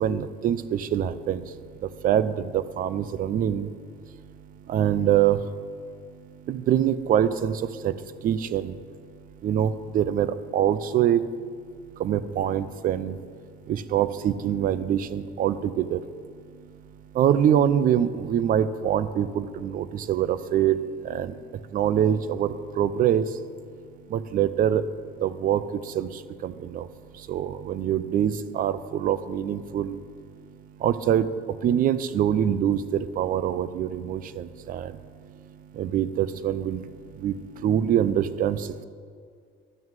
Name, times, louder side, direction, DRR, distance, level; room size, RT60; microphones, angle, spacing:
voice 1, 0.0-1.4 2.0-3.7 4.7-5.4 6.5-7.5 7.8-7.9 8.2-8.7 9.4-11.2 12.0-13.2 13.7-16.0 17.2-20.8 21.0-21.3 21.7-23.2 24.1-24.8 25.2-25.6 26.0-26.1 26.4-26.9 27.3-30.0 30.8-31.3 31.6-34.9 35.8-36.8 37.2-37.4 37.6-38.6, right 10 dB, 45° right, 15 dB, 0.5 m, -24 dB
11.0 x 6.1 x 7.4 m, 2.2 s
cardioid pair, 140°, 19 cm